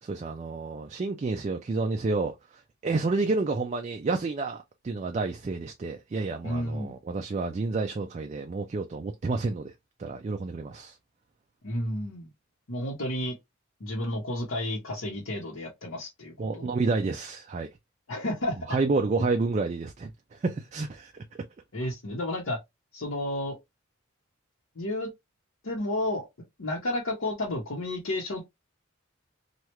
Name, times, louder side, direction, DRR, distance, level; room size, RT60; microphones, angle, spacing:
voice 1, 0.0-9.7 10.0-11.0 16.4-17.7 18.7-21.2, right 3 dB, 35° right, 0.3 m, -30 dB
voice 2, 6.4-6.9 11.6-12.3 12.7-13.4 13.8-16.7 18.1-18.6 21.7-22.6 22.9-23.6 24.8-25.1 25.6-26.2 26.6-28.4, left 1 dB, 85° left, 1.0 m, -31 dB
3.0 x 2.3 x 3.1 m
head